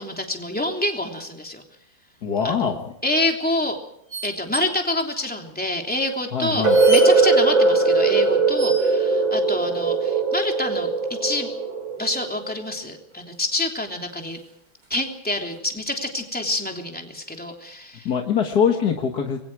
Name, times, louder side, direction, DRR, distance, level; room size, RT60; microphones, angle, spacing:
voice 1, 0.0-1.6 2.4-2.7 3.0-3.8 4.2-10.9 11.2-11.5 12.0-14.4 14.9-18.1, left 1 dB, 5° left, 2 dB, 3.1 m, -27 dB
voice 2, 2.2-2.8 6.3-6.8 18.1-19.4, left 7 dB, 50° left, 3 dB, 2.1 m, -22 dB
sound 1, 2.4-2.7 4.1-4.7 5.0-5.1 5.9-6.0 6.6-7.1 8.5-9.0 11.0-11.5 13.1-13.2 13.4-13.5 14.3-15.1 15.5-15.6, equal, 50° right, 4.8 m, -33 dB
sound 2, 6.6-12.5, right 3 dB, 70° right, 3.4 m, -19 dB
26.5 x 22.5 x 4.8 m, 0.72 s
omnidirectional pair, 2.2 m